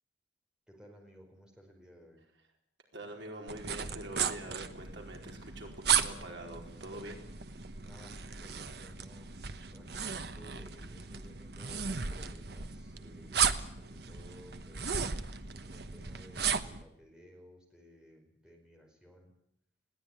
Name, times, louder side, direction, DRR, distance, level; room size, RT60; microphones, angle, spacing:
voice 1, 0.7-2.2 7.8-9.3 9.7-15.1 15.6-19.3, equal, 5° right, 1 dB, 5.0 m, -57 dB
voice 2, 2.9-7.2, right 1 dB, 75° right, 2 dB, 4.6 m, -45 dB
sound 1, 3.5-16.8, right 7 dB, 55° right, 1.1 m, -35 dB
20.5 x 16.5 x 9.8 m, 0.76 s
head